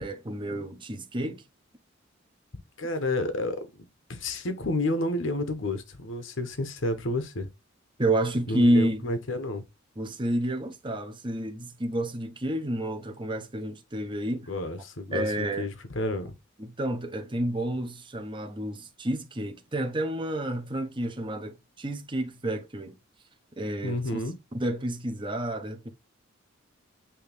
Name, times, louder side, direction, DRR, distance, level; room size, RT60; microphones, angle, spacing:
voice 1, 0.0-1.4 8.0-9.0 10.0-14.5 15.1-15.7 16.6-22.9 23.6-24.0 24.5-25.9, right 1 dB, 25° right, 1.1 m, -29 dB
voice 2, 2.8-7.5 8.5-9.6 14.5-16.4 23.8-24.3, left 2 dB, 65° left, 1.2 m, -30 dB
8.7 x 3.2 x 3.5 m
head